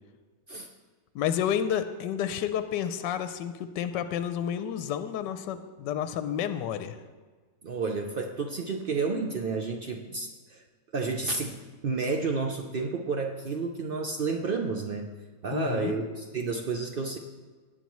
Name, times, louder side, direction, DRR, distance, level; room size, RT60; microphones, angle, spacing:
voice 1, 1.1-7.0 15.5-15.9, left 9 dB, 80° left, 10 dB, 1.2 m, -30 dB
voice 2, 7.6-10.6 10.9-15.1 15.4-17.2, right 4 dB, 65° right, 3 dB, 0.5 m, -31 dB
17.5 x 9.5 x 3.1 m, 1.4 s
omnidirectional pair, 1.9 m